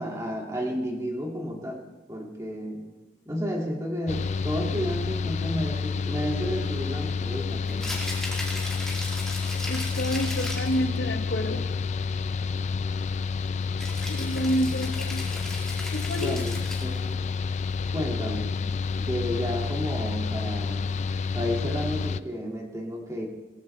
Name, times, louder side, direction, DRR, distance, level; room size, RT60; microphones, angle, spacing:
voice 1, 0.0-1.8 2.1-2.8 3.3-7.8 16.1-17.5 17.9-18.6 18.9-20.9 21.3-23.3, equal, 20° right, 0 dB, 2.1 m, -32 dB
Mechanical fan, 4.1-22.2, left 5 dB, 40° left, 0.3 m, -29 dB
Rattle (instrument), 7.7-10.9 13.8-17.0, left 1 dB, 5° left, 2.6 m, -37 dB
voice 2, 9.7-11.7 14.1-15.2 15.9-16.4, equal, 75° left, 7 dB, 1.0 m, -29 dB
19.0 x 16.0 x 3.2 m, 1.2 s
head